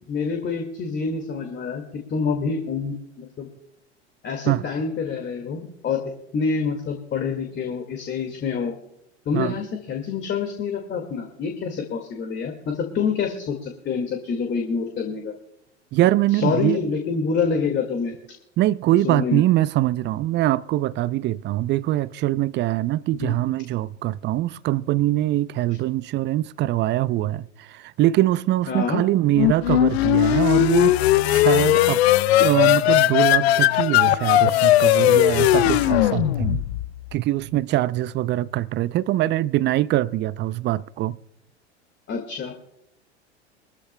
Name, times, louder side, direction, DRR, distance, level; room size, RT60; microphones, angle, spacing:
voice 1, 0.1-3.5 4.2-8.7 9.3-15.3 16.3-18.2 19.0-19.4 23.2-23.3 28.7-29.0 42.1-42.5, left 5 dB, 30° left, 2.0 m, -27 dB
voice 2, 15.9-16.8 18.6-32.0 32.4-36.6 37.1-41.2, right 15 dB, 35° right, 0.5 m, -23 dB
sound 1, 29.3-37.0, left 14 dB, 65° left, 0.6 m, -18 dB
22.5 x 13.5 x 2.2 m
hypercardioid pair, 90°, 34 cm